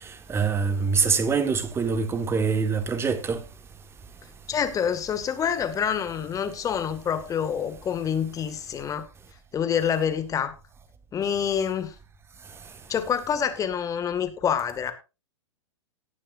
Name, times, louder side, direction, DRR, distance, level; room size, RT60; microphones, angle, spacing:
voice 1, 0.3-3.4, right 5 dB, 15° right, 1.6 m, -24 dB
voice 2, 4.5-9.1 9.5-10.5 11.1-11.9 12.9-14.9, left 8 dB, 20° left, 1.9 m, -27 dB
18.0 x 9.8 x 2.6 m
hypercardioid pair, 110°, 16 cm